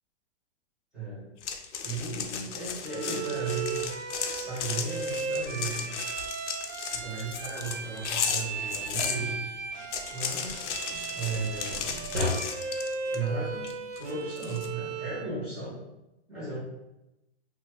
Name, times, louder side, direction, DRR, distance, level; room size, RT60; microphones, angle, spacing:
voice 1, 0.9-1.3 1.8-3.8 4.3-5.9 6.9-9.5 10.1-10.8 11.1-11.9 13.1-15.8 16.3-16.6, right 3 dB, ahead, -13 dB, 0.6 m, -35 dB
sound 1, 1.4-9.2 9.7-13.3 13.6-14.7, left 7 dB, 80° left, 0.5 m, -35 dB
Bowed string instrument, 2.8-15.4, right 5 dB, 85° right, 0.5 m, -36 dB
sound 2, 7.0-10.2 10.4-12.3, left 1 dB, 70° right, 1.1 m, -39 dB
2.8 x 2.2 x 2.9 m, 0.92 s
hypercardioid pair, 170°, 35 cm